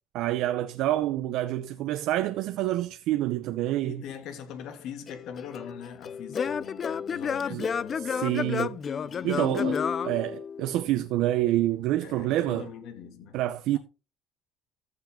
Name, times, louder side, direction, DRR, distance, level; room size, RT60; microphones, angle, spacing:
voice 1, 0.1-4.0 7.5-7.7 8.0-8.8 9.2-12.7 13.3-13.8, right 14 dB, 75° right, 0.7 m, -27 dB
voice 2, 3.8-8.3 9.0-9.7 12.0-13.4, left 8 dB, 70° left, 2.6 m, -42 dB
Singing / Plucked string instrument, 5.1-10.9, left 7 dB, 40° left, 0.7 m, -31 dB
15.0 x 5.8 x 3.8 m
supercardioid pair, 85°, 0 cm